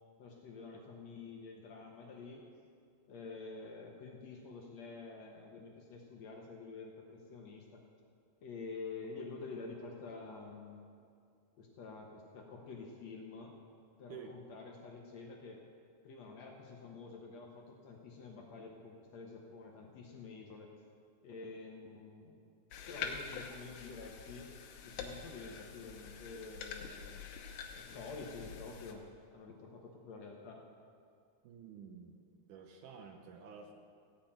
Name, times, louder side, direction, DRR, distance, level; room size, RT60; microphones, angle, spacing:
voice 1, 0.2-2.4 3.1-7.8 8.4-10.8 11.6-13.5 14.0-15.6 16.0-20.7 21.2-22.5 22.9-24.5 24.8-27.2 27.7-29.0 29.3-30.6, left 4 dB, 65° left, 0 dB, 1.8 m, -48 dB
sound 1, 22.7-28.9, left 6 dB, 85° left, 2.9 m, -46 dB
voice 2, 31.4-32.2 32.5-33.7, right 6 dB, 75° right, 4 dB, 1.9 m, -50 dB
16.0 x 5.7 x 8.7 m, 2.3 s
omnidirectional pair, 4.5 m